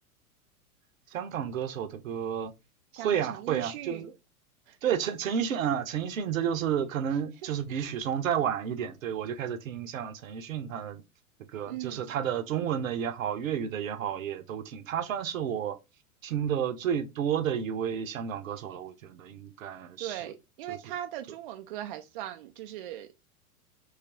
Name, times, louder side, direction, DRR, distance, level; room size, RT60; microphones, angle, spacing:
voice 1, 1.1-2.5 3.0-4.1 4.8-11.0 11.5-15.8 16.2-20.3 20.7-20.8, right 8 dB, 65° right, 0.7 m, -31 dB
voice 2, 2.9-4.1 4.7-4.8 7.7-7.9 11.7-12.2 20.0-23.3, right 12 dB, 40° right, 0.4 m, -39 dB
3.1 x 2.4 x 4.2 m
figure-of-eight pair, 95°, 44 cm